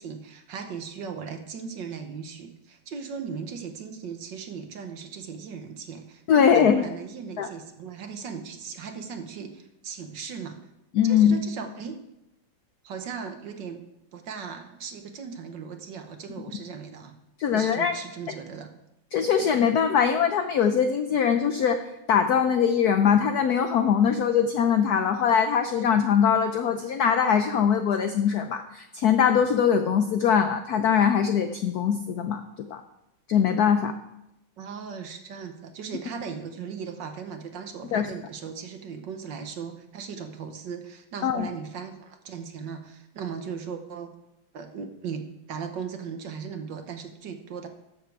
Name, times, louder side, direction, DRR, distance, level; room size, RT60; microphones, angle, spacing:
voice 1, 0.0-10.6 11.0-12.0 12.8-13.8 14.1-17.1 17.5-18.7 34.6-44.1 44.5-47.7, right 6 dB, 60° right, 6 dB, 1.5 m, -38 dB
voice 2, 6.3-6.9 7.4-7.5 10.9-11.4 17.4-17.9 19.1-21.8 22.1-32.8 33.3-33.9 37.9-38.1 41.2-41.5, left 7 dB, 80° left, 8 dB, 0.8 m, -22 dB
12.5 x 7.4 x 4.7 m, 0.87 s
omnidirectional pair, 2.4 m